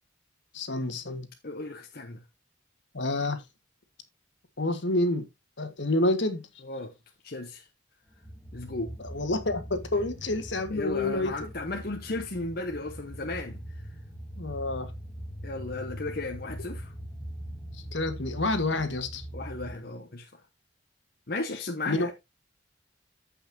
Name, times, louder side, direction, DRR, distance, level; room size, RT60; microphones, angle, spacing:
voice 1, 0.5-1.3 2.9-3.4 4.6-5.3 5.6-6.4 9.0-11.5 14.4-14.9 17.9-19.2 21.9-22.1, left 2 dB, 70° left, 1.7 m, -28 dB
voice 2, 1.4-2.2 6.6-6.9 7.2-7.6 8.5-9.0 10.7-13.6 15.4-16.9 19.3-20.4 21.3-22.1, left 2 dB, 55° left, 1.1 m, -35 dB
sound 1, 8.1-19.8, equal, 10° left, 1.6 m, -42 dB
14.5 x 5.7 x 2.8 m
head